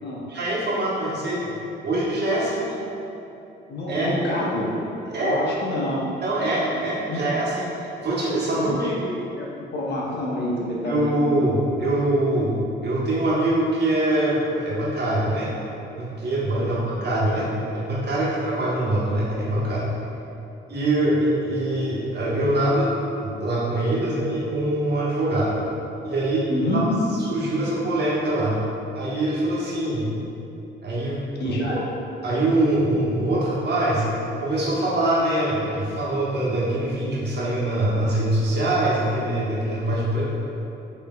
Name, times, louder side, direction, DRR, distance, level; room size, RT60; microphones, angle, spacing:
voice 1, 0.3-1.6 1.8-2.6 3.9-4.1 5.1-5.4 6.2-8.9 10.8-15.5 15.9-19.9 20.7-22.9 23.1-25.5 26.0-26.5 26.7-26.8 27.3-28.6 28.9-30.1 30.8-31.2 31.4-31.6 32.2-34.1 34.4-40.2, right 1 dB, 55° right, -7 dB, 1.2 m, -23 dB
voice 2, 2.6-3.1 3.7-4.7 5.2-6.1 7.1-7.3 8.5-8.9 9.4-9.5 9.7-11.1 16.6-16.7 26.5-26.8 31.4-31.8, left 1 dB, 60° left, -3 dB, 0.9 m, -27 dB
5.6 x 3.1 x 2.4 m, 2.9 s
cardioid pair, 90°, 20 cm